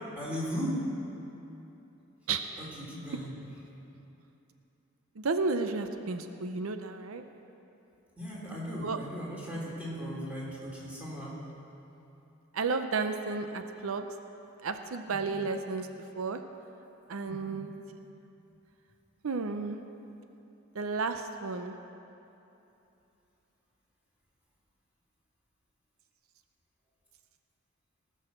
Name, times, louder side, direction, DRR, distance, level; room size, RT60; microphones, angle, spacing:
voice 1, 0.2-0.8 2.6-3.4 8.2-11.4 15.1-15.3 17.3-17.5, equal, 5° right, -6 dB, 3.0 m, -37 dB
voice 2, 5.2-7.2 8.8-9.0 12.5-14.1 14.6-15.9 16.2-16.4 17.1-17.7 19.2-19.8 20.7-21.7, right 4 dB, 85° right, 7 dB, 0.6 m, -32 dB
18.5 x 6.4 x 6.7 m, 2.9 s
head